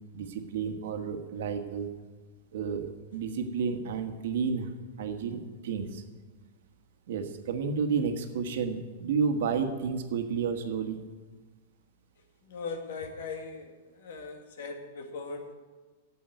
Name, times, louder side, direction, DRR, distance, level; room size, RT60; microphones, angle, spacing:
voice 1, 0.1-1.9 2.5-6.0 7.1-11.0, right 5 dB, 70° right, 6 dB, 1.4 m, -31 dB
voice 2, 12.5-15.5, left 4 dB, 70° left, 5 dB, 1.9 m, -39 dB
9.1 x 7.9 x 9.2 m, 1.3 s
supercardioid pair, 155°, 0 cm